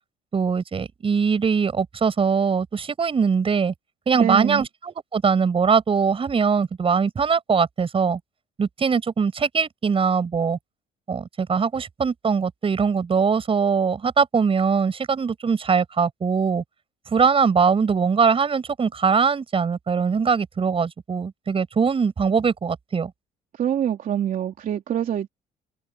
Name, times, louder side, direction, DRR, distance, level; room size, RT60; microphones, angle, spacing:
voice 1, 0.3-3.7 4.1-8.2 8.6-10.6 11.1-16.6 17.1-23.1, right 5 dB, 35° right, 5.9 m, -21 dB
voice 2, 4.1-4.6 23.5-25.3, right 10 dB, 55° right, 3.1 m, -25 dB
open air
cardioid pair, 110°, 17 cm